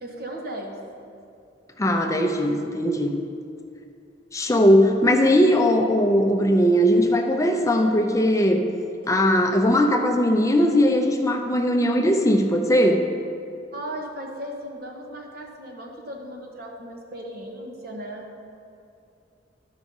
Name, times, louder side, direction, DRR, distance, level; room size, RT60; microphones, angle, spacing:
voice 1, 0.0-0.8 9.0-9.1 13.7-18.2, right 1 dB, 55° right, 0 dB, 1.3 m, -36 dB
voice 2, 1.8-3.2 4.3-8.6 9.1-13.0, equal, 15° left, 3 dB, 0.6 m, -19 dB
13.0 x 4.8 x 5.4 m, 2.5 s
head